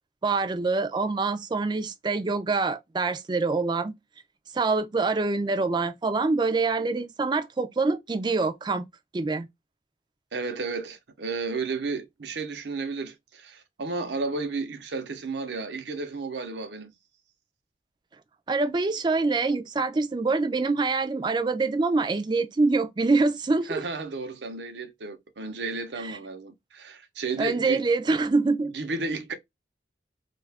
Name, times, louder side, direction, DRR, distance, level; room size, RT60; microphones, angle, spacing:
voice 1, 0.2-3.9 4.5-8.9 9.1-9.5 18.5-23.8 26.0-26.2 27.4-28.7, right 3 dB, 25° right, 0.4 m, -25 dB
voice 2, 10.3-16.9 23.7-27.8 28.7-29.3, right 3 dB, 80° right, 0.7 m, -33 dB
2.7 x 2.4 x 3.3 m
head